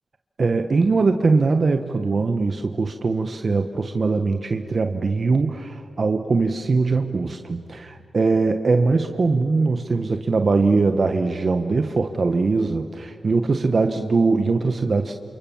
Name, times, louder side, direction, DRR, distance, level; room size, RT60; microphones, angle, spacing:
voice 1, 0.4-15.1, right 4 dB, 50° right, 7 dB, 1.2 m, -21 dB
29.0 x 28.0 x 7.3 m, 2.3 s
cardioid pair, 80°, 0 cm